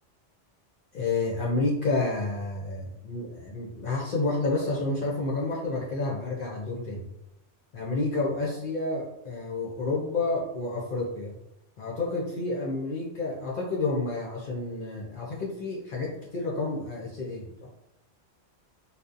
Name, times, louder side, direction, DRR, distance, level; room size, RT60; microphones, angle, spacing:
voice 1, 0.9-7.0 7.7-11.3 11.8-17.7, left 3 dB, 60° left, -3 dB, 0.6 m, -30 dB
2.6 x 2.1 x 2.4 m, 0.83 s
omnidirectional pair, 1.2 m